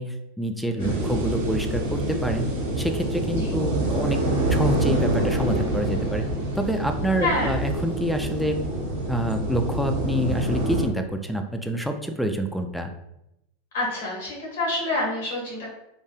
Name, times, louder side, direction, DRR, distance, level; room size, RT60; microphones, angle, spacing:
voice 1, 0.0-2.5 2.8-4.2 4.5-6.2 6.6-8.6 9.1-12.9, right 1 dB, ahead, 5 dB, 0.4 m, -27 dB
voice 2, 0.7-1.1 3.3-3.6 7.2-7.6 13.7-15.7, left 1 dB, 70° left, -3 dB, 1.5 m, -28 dB
sound 1, 0.8-10.8, right 1 dB, 65° right, 1.0 m, -26 dB
3.2 x 2.6 x 2.2 m, 0.86 s
hypercardioid pair, 95°, 0 cm